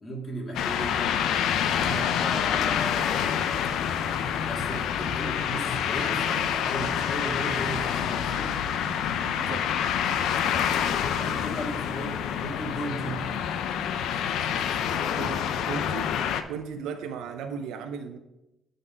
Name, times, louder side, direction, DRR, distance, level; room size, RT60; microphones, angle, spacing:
voice 1, 0.0-1.2 1.7-3.1 4.5-8.9 11.2-13.2, equal, 35° left, -3 dB, 2.6 m, -36 dB
sound 1, 0.5-16.4, left 8 dB, 85° left, 0.5 m, -27 dB
voice 2, 9.2-9.7 11.2-11.6 15.2-16.2 16.5-18.2, right 6 dB, 90° right, 7 dB, 0.6 m, -36 dB
9.1 x 4.2 x 5.1 m, 0.91 s
cardioid pair, 90°, 0 cm